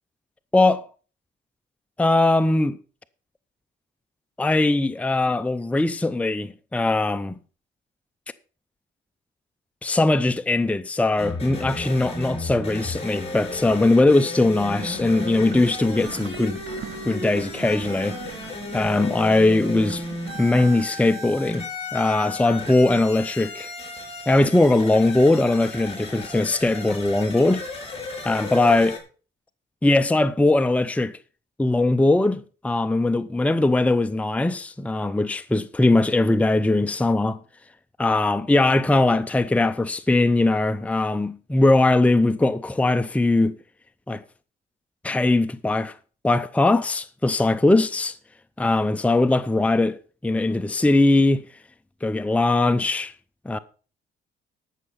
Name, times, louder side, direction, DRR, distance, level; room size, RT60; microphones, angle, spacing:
voice 1, 2.0-2.8 4.4-7.3 9.8-16.6 17.1-18.4 18.7-20.0 20.3-21.7 21.9-23.7 24.3-27.6 28.2-29.0 29.8-31.2 31.6-37.4 38.0-43.6 44.1-44.2 45.0-46.0 46.2-48.2 48.6-51.4 52.0-53.1 53.5-53.6, left 2 dB, 5° left, 0.6 m, -20 dB
sound 1, 11.2-29.0, left 3 dB, 30° left, 4.3 m, -35 dB
sound 2, 14.5-20.9, right 9 dB, 80° right, 1.4 m, -40 dB
13.5 x 6.2 x 5.6 m
cardioid pair, 90°, 20 cm